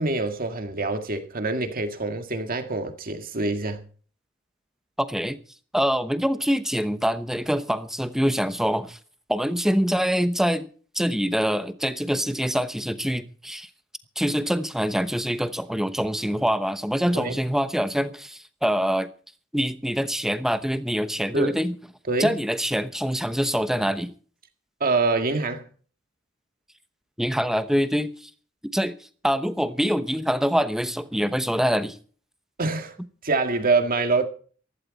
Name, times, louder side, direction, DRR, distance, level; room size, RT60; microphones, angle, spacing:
voice 1, 0.0-3.8 17.1-17.4 21.3-21.5 22.1-22.4 24.8-25.7 32.6-33.0 33.2-34.3, right 3 dB, 45° right, 1.9 m, -25 dB
voice 2, 5.0-5.4 5.7-9.0 9.3-10.7 10.9-13.7 14.2-19.1 19.5-21.7 22.2-24.1 27.2-28.1 28.7-29.0 29.2-32.0, equal, ahead, 0.9 m, -25 dB
15.5 x 15.5 x 4.2 m
head